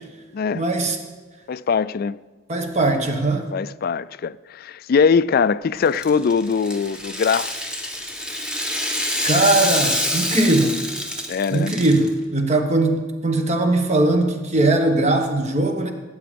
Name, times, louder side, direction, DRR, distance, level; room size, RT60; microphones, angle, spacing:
voice 1, 0.5-1.0 2.5-3.5 9.2-10.9 11.5-15.9, right 2 dB, 35° right, 1.4 m, -20 dB
voice 2, 1.5-2.2 3.5-7.5 11.3-11.8, left 5 dB, 50° left, 0.3 m, -21 dB
Rattle (instrument), 5.8-12.1, left 1 dB, 5° right, 1.3 m, -26 dB
17.5 x 8.7 x 5.2 m
head